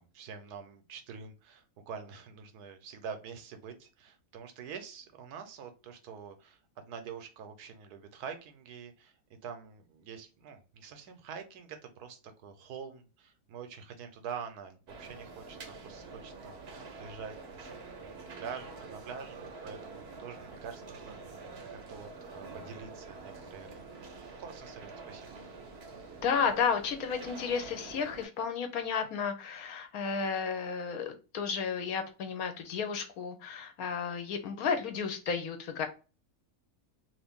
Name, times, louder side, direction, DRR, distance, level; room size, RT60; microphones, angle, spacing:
voice 1, 0.0-25.4, right 6 dB, 80° right, 7 dB, 1.2 m, -46 dB
sound 1, 14.9-28.2, right 3 dB, 55° right, 0.8 m, -47 dB
voice 2, 26.2-35.9, left 6 dB, 70° left, 7 dB, 1.1 m, -32 dB
2.9 x 2.6 x 3.5 m, 0.33 s
omnidirectional pair, 1.6 m